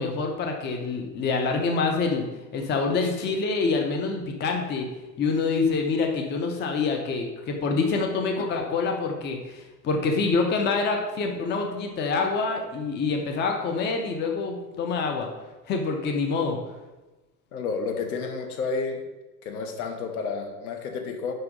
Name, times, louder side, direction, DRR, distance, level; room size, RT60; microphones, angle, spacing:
voice 1, 0.0-2.3 2.5-4.9 5.2-15.3 15.7-16.6, left 4 dB, 20° left, 3 dB, 0.8 m, -26 dB
voice 2, 17.5-19.0 19.4-21.3, left 4 dB, 60° left, 4 dB, 1.3 m, -31 dB
5.9 x 5.5 x 5.2 m, 1.1 s
figure-of-eight pair, 80°, 50 cm